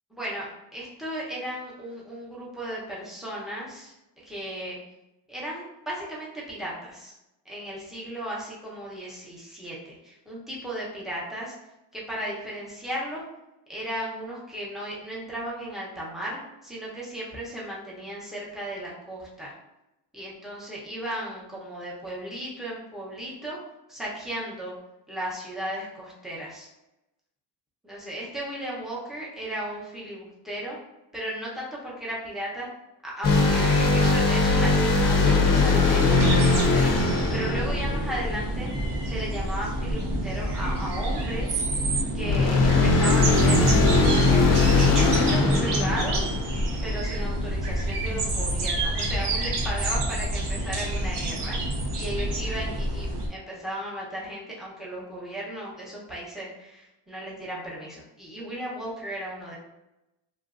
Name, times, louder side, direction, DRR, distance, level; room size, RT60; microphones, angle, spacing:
voice 1, 0.1-3.9 4.2-4.8 5.3-7.1 7.4-11.5 11.9-13.2 13.7-19.5 20.1-23.6 23.9-24.7 25.1-26.7 27.8-30.8 31.1-32.7 33.0-36.9 37.3-38.7 39.0-41.6 42.1-43.9 44.3-46.3 46.8-51.6 51.9-59.6, right 1 dB, ahead, -6 dB, 0.7 m, -35 dB
sound 1, 33.2-38.7 42.2-47.0, left 3 dB, 45° left, 0.5 m, -21 dB
sound 2, 36.1-53.3, right 1 dB, 60° right, 0.8 m, -27 dB
3.1 x 2.4 x 2.5 m, 0.92 s
cardioid pair, 140°, 46 cm